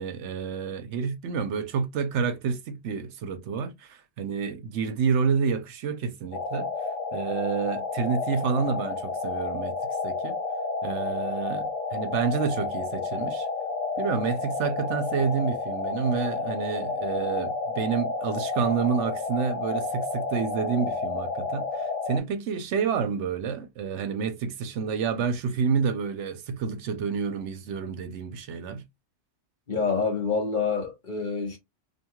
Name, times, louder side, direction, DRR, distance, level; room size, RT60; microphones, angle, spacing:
voice 1, 0.0-6.7 7.1-9.8 10.0-10.4 10.8-13.5 14.0-28.8, right 6 dB, 75° right, 0.9 m, -29 dB
sound 1, 6.3-22.2, left 4 dB, 85° left, 1.0 m, -31 dB
voice 2, 29.7-31.6, left 4 dB, 45° left, 0.9 m, -27 dB
2.6 x 2.3 x 2.9 m
omnidirectional pair, 1.2 m